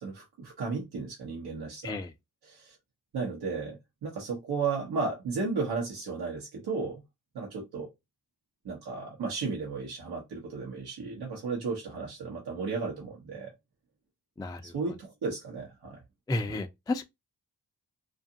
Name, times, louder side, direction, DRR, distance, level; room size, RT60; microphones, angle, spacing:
voice 1, 0.0-2.0 2.4-2.7 3.1-7.0 7.3-7.9 8.6-13.5 14.6-16.0, right 4 dB, 80° right, 0.9 m, -34 dB
voice 2, 14.4-14.7 16.3-17.0, left 2 dB, 10° left, 0.3 m, -32 dB
2.5 x 2.4 x 2.6 m
cardioid pair, 60°, 38 cm